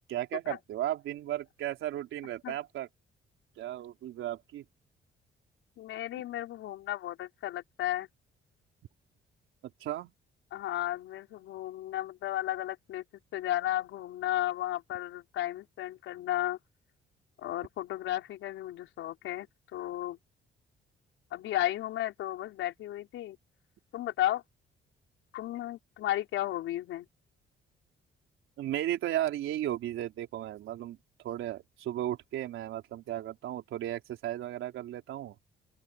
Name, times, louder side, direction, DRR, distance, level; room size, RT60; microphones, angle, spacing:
voice 1, 0.1-2.9 3.6-4.6 9.8-10.1 28.6-31.0 31.2-35.3, right 13 dB, 85° right, 3.8 m, -35 dB
voice 2, 5.8-8.1 10.5-13.0 13.3-16.6 17.4-20.2 21.3-23.4 23.9-24.4 25.3-27.1, left 13 dB, 85° left, 5.3 m, -34 dB
open air
cardioid pair, 90°, 20 cm